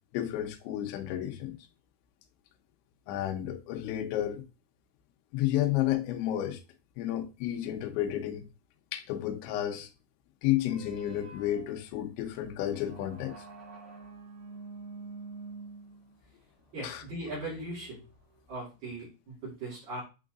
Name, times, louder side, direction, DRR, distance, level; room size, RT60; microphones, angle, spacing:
voice 1, 0.1-1.6 3.1-4.4 5.3-6.6 7.0-8.4 8.9-9.9 10.4-13.4 16.8-17.0, left 12 dB, 85° left, 3.0 m, -31 dB
sound 1, 10.7-18.4, right 4 dB, 10° left, 2.0 m, -48 dB
voice 2, 16.7-18.0 18.5-20.0, right 2 dB, 50° right, 4.0 m, -39 dB
8.4 x 4.6 x 2.5 m
omnidirectional pair, 5.6 m